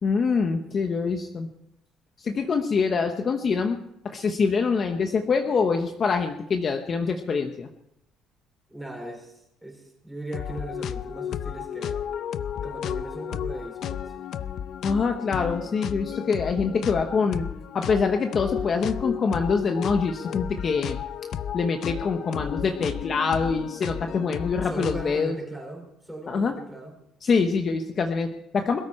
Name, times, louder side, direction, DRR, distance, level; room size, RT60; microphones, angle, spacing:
voice 1, 0.0-1.5 2.2-3.8 4.0-7.7 14.8-17.5 17.7-21.0 21.5-25.4 26.3-26.5 27.2-28.8, left 5 dB, 35° left, 5 dB, 1.0 m, -25 dB
voice 2, 8.7-12.0 12.5-14.1 24.6-26.9, right 1 dB, ahead, 0 dB, 4.9 m, -38 dB
sound 1, 10.3-25.2, left 9 dB, 50° left, 0.6 m, -33 dB
21.0 x 13.5 x 4.4 m, 0.82 s
cardioid pair, 160°, 0 cm